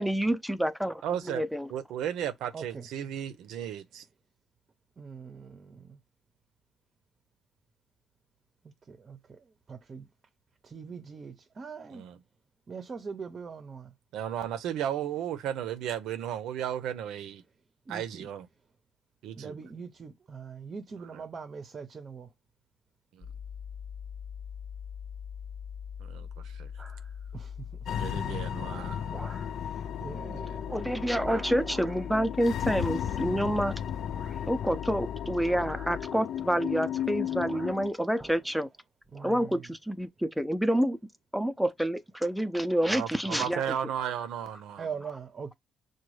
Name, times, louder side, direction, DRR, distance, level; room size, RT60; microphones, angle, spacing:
voice 1, 0.0-1.0 1.3-1.7 30.7-33.8 34.5-38.7 39.2-41.0 41.3-43.6, equal, ahead, 0.5 m, -28 dB
voice 2, 1.0-1.4 1.7-4.0 11.9-12.2 14.1-17.4 17.9-18.5 19.2-19.6 21.0-21.2 23.1-23.2 26.0-26.7 27.9-29.1 30.3-30.4 42.9-44.9, right 10 dB, 90° right, 0.6 m, -35 dB
voice 3, 2.5-2.9 5.0-6.0 8.9-10.1 10.6-12.0 12.7-13.9 17.9-18.3 19.3-22.3 27.3-27.5 29.6-30.8 39.1-39.6 44.8-45.5, right 5 dB, 40° right, 0.7 m, -42 dB
sound 1, 23.2-36.0, left 7 dB, 50° left, 1.0 m, -41 dB
sound 2, 26.8-27.1 27.6-28.0 28.5-29.6 30.0-30.2 30.5-30.6 31.2-32.1 34.0-34.5 35.4-36.1 37.0-37.1 37.4-38.8 39.0-39.5 40.0-40.1, right 2 dB, 20° right, 1.0 m, -47 dB
sound 3, 27.9-37.9, left 9 dB, 75° left, 0.3 m, -35 dB
6.1 x 2.2 x 3.1 m
cardioid pair, 90°, 0 cm